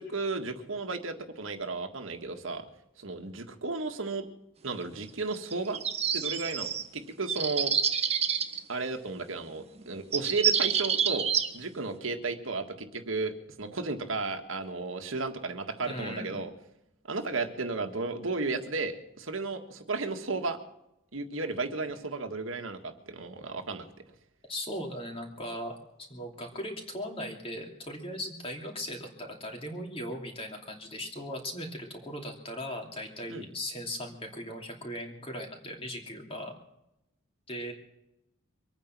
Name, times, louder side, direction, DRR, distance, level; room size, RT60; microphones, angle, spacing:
voice 1, 0.0-2.6 3.0-4.3 4.6-5.8 6.1-7.7 8.7-11.3 11.5-16.5 17.1-20.6 21.1-23.8 33.3-33.5, right 3 dB, 80° right, 6 dB, 1.7 m, -34 dB
sound 1, 5.3-6.9 7.3-8.6 9.8-9.9 10.1-11.5, right 7 dB, 30° right, 1.2 m, -28 dB
voice 2, 15.9-16.4 24.5-25.7 26.1-36.5 37.5-37.7, equal, 25° left, 2 dB, 2.8 m, -38 dB
24.0 x 9.3 x 6.0 m, 0.86 s
head